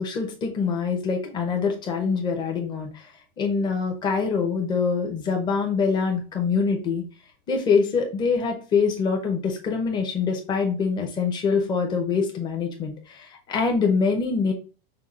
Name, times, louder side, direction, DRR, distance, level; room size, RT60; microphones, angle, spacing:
voice 1, 0.0-3.1 3.4-7.0 7.5-14.5, left 5 dB, 15° left, 2 dB, 0.8 m, -24 dB
5.7 x 2.3 x 3.7 m, 0.35 s
supercardioid pair, 175°, 29 cm